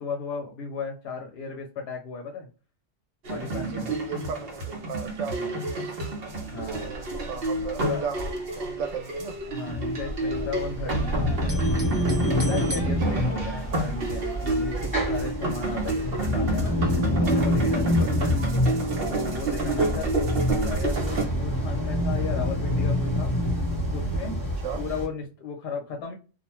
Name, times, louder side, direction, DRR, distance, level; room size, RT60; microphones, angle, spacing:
voice 1, 0.0-2.5 3.3-3.9 5.4-5.6 6.5-6.9 7.6-8.0 9.5-11.6 12.1-20.1 20.4-23.3 23.9-24.4 24.8-26.1, left 4 dB, 60° left, 0.8 m, -35 dB
sound 1, 3.3-21.3, right 2 dB, 55° right, 0.9 m, -29 dB
voice 2, 3.4-5.9 6.7-9.4 13.1-13.2 18.0-18.3 19.8-20.3 24.6-24.8, right 6 dB, 85° right, 1.0 m, -36 dB
sound 2, 7.9-9.1 9.4-11.0 11.3-12.8, equal, 25° right, 0.6 m, -40 dB
sound 3, 9.6-25.1, left 1 dB, 15° left, 1.1 m, -27 dB
2.5 x 2.2 x 2.9 m
omnidirectional pair, 1.3 m